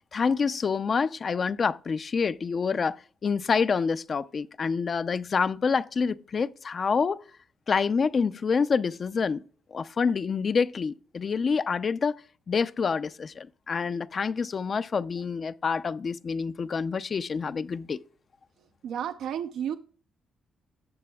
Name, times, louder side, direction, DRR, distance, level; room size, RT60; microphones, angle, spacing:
voice 1, 0.1-3.0 3.2-7.2 7.7-9.4 9.7-12.1 12.5-18.0, left 5 dB, 45° left, 0.5 m, -27 dB
voice 2, 18.6-19.8, right 9 dB, 80° right, 0.5 m, -33 dB
18.5 x 6.9 x 2.3 m
cardioid pair, 90°, 0 cm